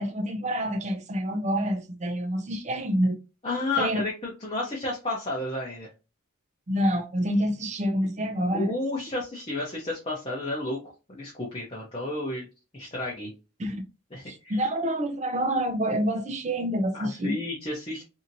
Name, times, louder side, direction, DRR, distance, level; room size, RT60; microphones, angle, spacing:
voice 1, 0.0-3.2 3.8-4.0 6.7-8.7 13.6-13.9 14.3-17.3, equal, 35° right, 0.5 m, -27 dB
voice 2, 3.4-5.9 8.5-12.5 12.7-13.3 14.1-14.6 16.9-18.0, left 2 dB, 30° left, 0.7 m, -31 dB
2.7 x 2.7 x 2.6 m
head